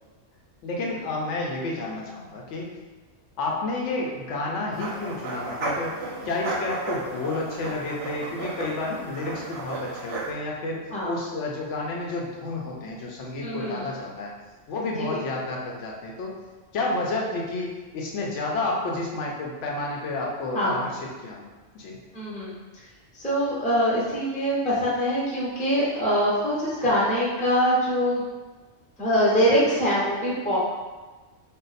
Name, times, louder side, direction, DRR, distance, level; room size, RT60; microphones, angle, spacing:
voice 1, 0.6-2.7 3.4-6.0 6.2-14.3 14.7-16.3 16.7-21.5 21.7-22.0 29.6-29.7, left 2 dB, 80° left, -2 dB, 0.9 m, -30 dB
sound 1, 4.7-10.3, right 3 dB, 65° right, 0.7 m, -34 dB
voice 2, 13.4-13.8 15.0-15.2 20.5-20.7 22.1-22.5 23.1-28.2 29.0-30.6, equal, 10° left, -7 dB, 0.5 m, -23 dB
2.5 x 2.0 x 3.9 m, 1.2 s
omnidirectional pair, 1.2 m